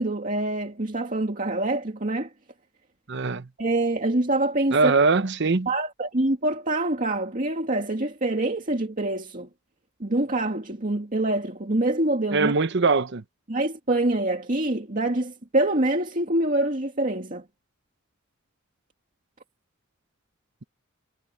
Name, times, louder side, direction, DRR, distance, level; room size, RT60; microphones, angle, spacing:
voice 1, 0.0-2.3 3.6-4.9 5.7-9.5 10.0-12.5 13.5-17.4, right 2 dB, 40° right, 2.3 m, -25 dB
voice 2, 3.1-3.5 4.7-5.7 12.3-13.2, right 4 dB, 55° right, 0.9 m, -21 dB
head